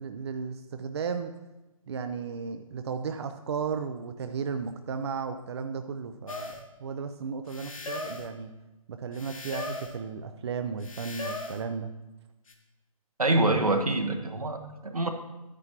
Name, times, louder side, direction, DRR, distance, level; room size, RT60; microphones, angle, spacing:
voice 1, 0.0-1.3 1.9-6.5 6.8-8.5 8.9-11.9, right 5 dB, 50° right, 8 dB, 0.5 m, -34 dB
sound 1, 6.3-6.6 7.5-8.3 9.1-10.0 10.8-11.6 12.5-12.6, left 3 dB, 70° left, 1.3 m, -38 dB
voice 2, 13.2-15.1, right 2 dB, 90° right, 5 dB, 1.1 m, -25 dB
9.7 x 9.6 x 2.9 m, 1.0 s
figure-of-eight pair, 140°, 18 cm